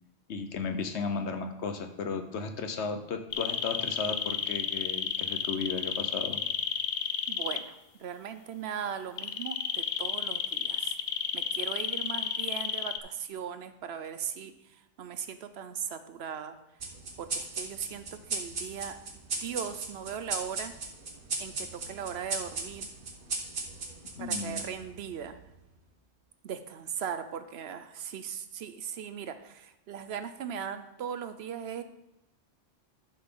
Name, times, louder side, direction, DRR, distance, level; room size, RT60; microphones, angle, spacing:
voice 1, 0.3-6.4 24.2-24.6, left 4 dB, 85° left, 7 dB, 1.1 m, -35 dB
sound 1, 3.3-7.6 9.2-13.0, left 8 dB, 65° left, 0.8 m, -31 dB
voice 2, 7.3-11.0 11.3-16.6 17.2-19.0 19.4-20.7 21.4-22.9 24.2-25.4 26.4-31.8, right 8 dB, 70° right, 10 dB, 0.9 m, -38 dB
sound 2, 16.8-25.7, right 4 dB, 55° right, 1.2 m, -37 dB
11.0 x 5.9 x 3.8 m, 0.89 s
omnidirectional pair, 1.1 m